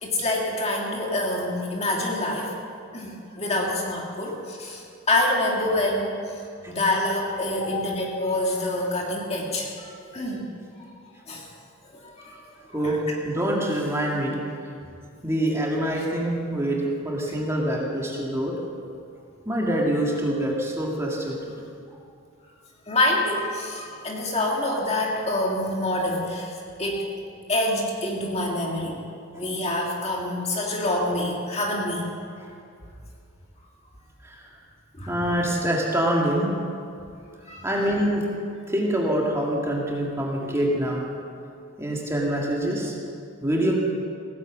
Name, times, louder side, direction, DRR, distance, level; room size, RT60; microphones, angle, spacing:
voice 1, 0.0-2.5 2.9-6.1 6.7-10.4 11.3-11.5 11.9-12.3 12.8-13.0 22.9-27.1 27.5-29.0 29.3-32.1 35.0-35.1 37.5-37.7, left 1 dB, 30° left, -1 dB, 1.9 m, -26 dB
voice 2, 13.2-14.4 15.2-18.5 19.5-21.5 34.2-34.4 35.1-36.5 37.6-38.2 38.7-41.0 41.8-42.9 43.4-43.7, right 1 dB, 10° right, -3 dB, 2.1 m, -25 dB
17.0 x 10.5 x 7.4 m, 2.4 s
head